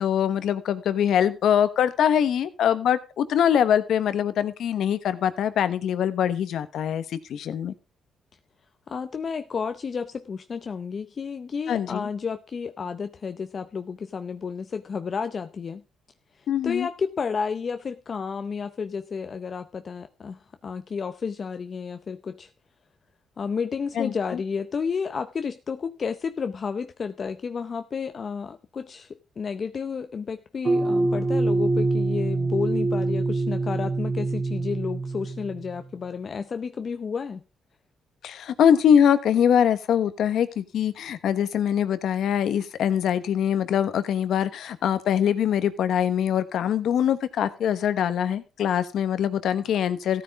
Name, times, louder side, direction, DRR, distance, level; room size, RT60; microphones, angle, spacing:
voice 1, 0.0-7.7 11.7-12.1 16.5-16.9 24.0-24.4 38.2-50.2, left 9 dB, 70° left, 13 dB, 1.1 m, -23 dB
voice 2, 8.9-15.8 16.4-22.5 23.4-37.4, left 5 dB, 45° left, 9 dB, 0.7 m, -31 dB
sound 1, 30.7-35.9, right 2 dB, 30° right, 0.9 m, -25 dB
15.0 x 9.3 x 3.6 m, 0.32 s
cardioid pair, 90°, 0 cm